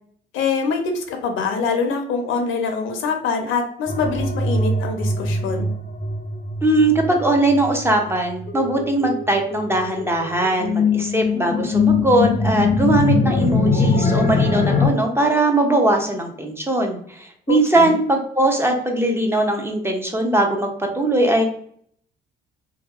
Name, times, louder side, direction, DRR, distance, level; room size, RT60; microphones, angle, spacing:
voice 1, 0.3-5.7 17.5-17.9, left 5 dB, 85° left, 4 dB, 0.6 m, -24 dB
sound 1, 3.9-14.9, left 3 dB, 35° left, 0.5 m, -22 dB
voice 2, 6.6-21.4, right 2 dB, 10° right, 2 dB, 0.5 m, -20 dB
2.7 x 2.2 x 2.3 m, 0.62 s
cardioid pair, 90°, 20 cm